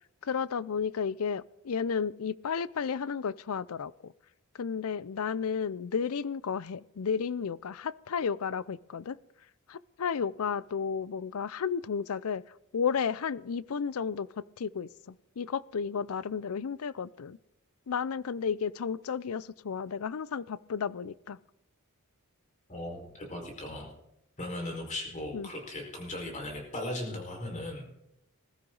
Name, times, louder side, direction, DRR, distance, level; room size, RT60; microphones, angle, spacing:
voice 1, 0.2-4.1 4.6-9.2 9.7-12.4 12.7-14.3 14.6-17.4 17.9-21.4 25.3-25.5, left 6 dB, 75° left, 20 dB, 0.5 m, -32 dB
voice 2, 22.7-23.9 24.4-27.9, left 1 dB, 35° left, 0 dB, 4.9 m, -37 dB
20.5 x 13.5 x 4.0 m, 0.84 s
head